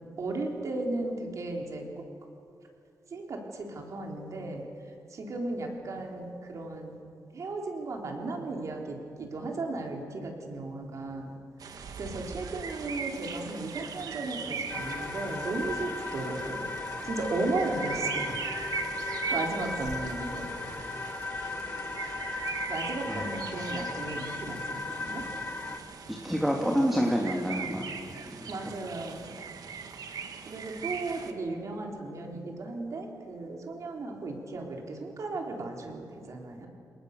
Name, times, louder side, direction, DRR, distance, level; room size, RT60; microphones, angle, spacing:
voice 1, 0.2-1.9 3.1-4.7 5.1-7.0 7.3-11.4 12.0-16.7 17.0-18.4 18.9-20.5 22.7-25.2 28.5-29.3 30.5-36.7, right 2 dB, 50° right, 1 dB, 3.8 m, -35 dB
sound 1, 11.6-31.3, right 5 dB, 70° right, 1.8 m, -40 dB
sound 2, 14.7-25.8, left 3 dB, 30° left, 1.7 m, -36 dB
voice 2, 26.2-27.9 28.3-28.5, equal, ahead, 0 dB, 2.4 m, -27 dB
29.5 x 19.0 x 6.7 m, 2.5 s
wide cardioid pair, 140°, 7 cm